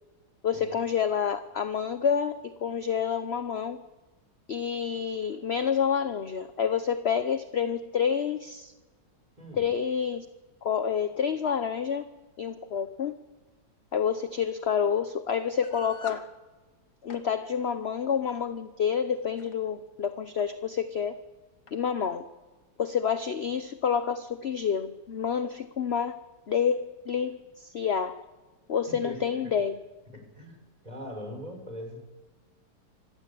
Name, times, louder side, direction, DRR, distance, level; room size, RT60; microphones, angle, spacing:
voice 1, 0.4-3.8 4.5-8.7 9.6-10.3 10.6-12.1 12.4-13.2 13.9-16.2 17.0-21.2 21.7-22.2 22.8-26.2 26.5-28.2 28.7-29.7, left 7 dB, 45° left, 10 dB, 0.9 m, -28 dB
voice 2, 9.4-9.7 28.9-29.6 30.1-32.0, equal, 20° right, 4 dB, 5.7 m, -41 dB
sound 1, 15.6-16.3 16.9-17.3 18.3-18.5 19.2-19.5 20.4-20.5 20.8-20.9 21.7-21.8, left 6 dB, 65° left, 2.1 m, -46 dB
25.5 x 15.5 x 8.5 m, 1.3 s
omnidirectional pair, 1.9 m